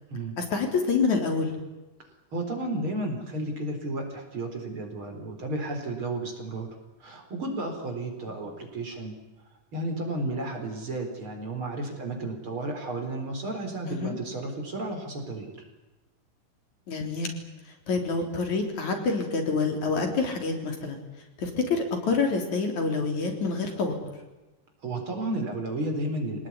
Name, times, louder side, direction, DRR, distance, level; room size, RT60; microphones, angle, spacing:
voice 1, 0.4-1.5 8.3-8.4 13.9-14.2 16.9-17.4 17.9-21.0 21.4-24.0, left 4 dB, 65° left, 3 dB, 5.0 m, -27 dB
voice 2, 2.3-6.7 7.0-9.1 9.7-15.5 24.8-26.5, right 2 dB, 40° right, 3 dB, 4.9 m, -32 dB
25.5 x 19.0 x 9.8 m, 1.1 s
omnidirectional pair, 3.6 m